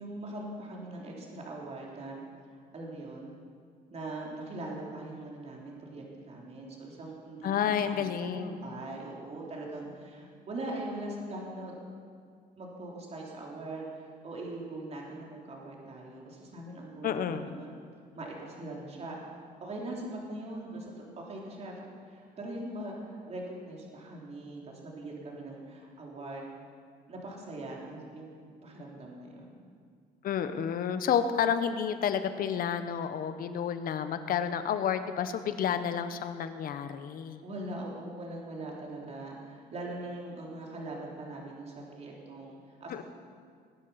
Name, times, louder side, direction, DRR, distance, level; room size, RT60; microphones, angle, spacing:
voice 1, 0.0-2.2 2.5-3.3 3.9-11.7 12.6-17.7 18.1-26.5 27.1-28.4 28.6-29.7 37.4-43.0, right 2 dB, 40° right, -2 dB, 3.6 m, -41 dB
voice 2, 7.4-8.6 10.4-10.5 17.0-17.5 30.2-37.4 42.9-43.0, left 8 dB, 60° left, 10 dB, 1.1 m, -30 dB
20.5 x 9.7 x 5.8 m, 2.1 s
cardioid pair, 110°, 17 cm